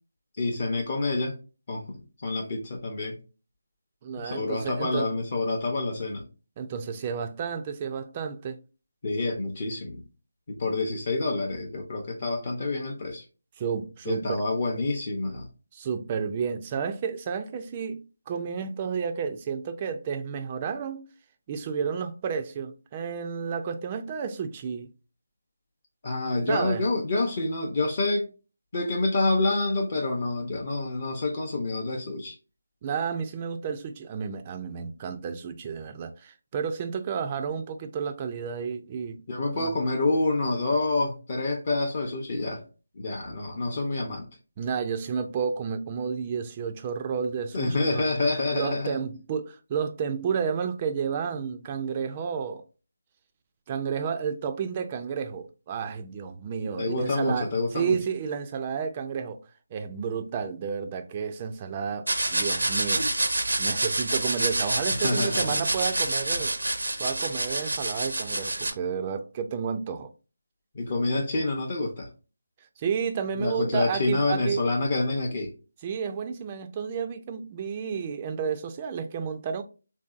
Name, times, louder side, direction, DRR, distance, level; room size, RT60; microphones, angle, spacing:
voice 1, 0.4-1.3 1.7-3.2 4.2-6.2 9.0-10.0 10.5-13.2 14.1-15.5 26.0-28.3 28.7-32.4 39.3-42.6 43.0-44.3 47.5-49.0 56.8-58.0 65.0-65.6 70.7-72.1 73.4-75.5, left 2 dB, 40° left, 0.6 m, -27 dB
voice 2, 4.0-5.1 6.6-8.6 13.6-14.2 15.7-21.1 21.5-24.9 26.5-26.9 32.8-39.2 39.5-39.7 44.6-48.1 48.5-52.6 53.7-57.5 57.7-59.4 59.7-63.1 63.6-66.6 67.0-70.1 72.8-74.6 75.8-79.6, right 6 dB, 25° right, 0.3 m, -31 dB
sound 1, 62.1-68.7, right 2 dB, 75° right, 0.6 m, -27 dB
3.2 x 2.6 x 2.4 m
figure-of-eight pair, 160°, 0 cm